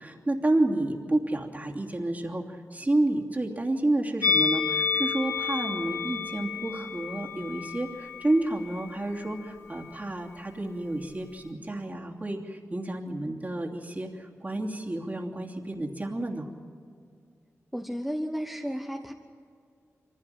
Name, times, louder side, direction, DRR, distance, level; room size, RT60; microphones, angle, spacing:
voice 1, 0.0-16.5, right 2 dB, 30° right, 0 dB, 2.9 m, -30 dB
Musical instrument, 4.2-9.4 9.7-9.9, left 5 dB, 60° left, 3.4 m, -30 dB
voice 2, 17.7-19.1, equal, ahead, 2 dB, 1.3 m, -33 dB
24.0 x 16.0 x 9.3 m, 2.2 s
wide cardioid pair, 65°, 5 cm